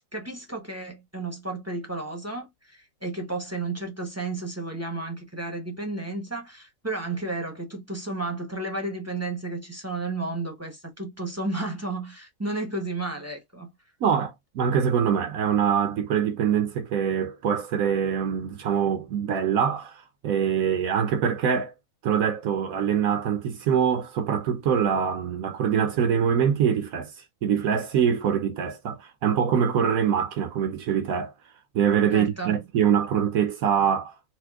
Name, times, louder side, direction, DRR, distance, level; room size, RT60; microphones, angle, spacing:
voice 1, 0.1-13.7 32.1-32.6, right 2 dB, 15° right, 0.7 m, -32 dB
voice 2, 14.0-21.7 22.0-31.3 31.7-34.3, right 8 dB, 80° right, 1.1 m, -24 dB
4.3 x 2.1 x 2.3 m
omnidirectional pair, 1.4 m